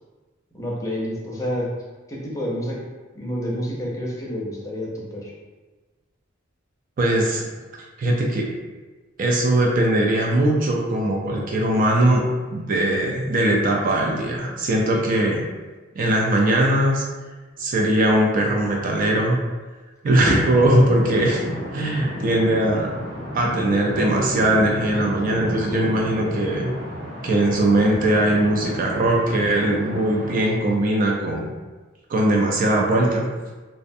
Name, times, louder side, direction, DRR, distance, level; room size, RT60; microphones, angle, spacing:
voice 1, 0.5-1.7 2.1-2.8 3.1-5.3 20.2-20.3, equal, 15° left, -5 dB, 0.5 m, -28 dB
voice 2, 7.0-7.5 8.0-8.5 9.2-12.2 12.5-15.4 16.0-17.0 17.6-19.4 20.0-21.4 21.7-22.9 23.3-26.7 27.2-31.5 32.1-33.3, right 1 dB, 45° right, -1 dB, 0.4 m, -20 dB
sound 1, 20.2-30.4, equal, 65° right, 0.8 m, -32 dB
2.5 x 2.1 x 2.6 m, 1.3 s
head